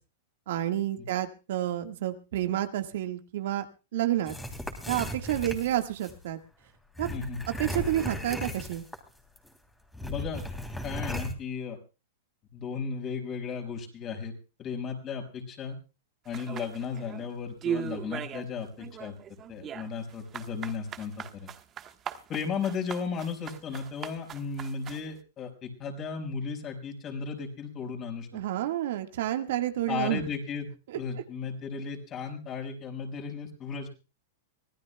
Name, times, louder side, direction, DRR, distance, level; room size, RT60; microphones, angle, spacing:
voice 1, 0.5-3.6 3.9-4.3 4.9-6.4 7.0-7.1 7.6-8.8 28.3-30.3 30.9-31.0, right 13 dB, 70° right, 6 dB, 1.6 m, -29 dB
sound 1, 4.3-6.2 6.9-9.1 9.4-9.5 9.9-11.3, left 1 dB, 5° left, 3.0 m, -36 dB
voice 2, 7.1-7.4 10.0-10.4 10.8-11.8 12.5-14.3 14.6-15.8 16.3-19.1 19.5-21.5 22.3-28.3 29.9-30.7 30.9-33.9, left 5 dB, 30° left, 2 dB, 5.2 m, -35 dB
sound 2, 16.3-17.3 17.6-18.5 18.8-25.1, right 8 dB, 30° right, 1.3 m, -38 dB
25.0 x 17.0 x 2.3 m, 0.33 s
hypercardioid pair, 125°, 0 cm